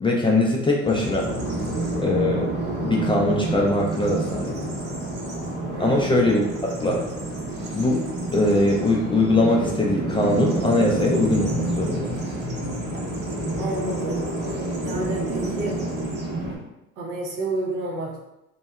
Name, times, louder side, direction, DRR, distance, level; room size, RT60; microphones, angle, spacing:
voice 1, 0.0-1.3 2.0-2.5 2.8-4.6 5.8-7.0 7.7-8.0 8.3-12.1, left 2 dB, 15° left, -2 dB, 0.3 m, -21 dB
Bird vocalization bird call bird song, 0.8-16.6, right 2 dB, 30° right, 0.7 m, -28 dB
voice 2, 5.7-6.0 13.6-14.2 14.8-15.8 17.0-18.2, right 2 dB, 80° right, -3 dB, 0.8 m, -30 dB
2.6 x 2.2 x 2.2 m, 0.92 s
hypercardioid pair, 65°, 37 cm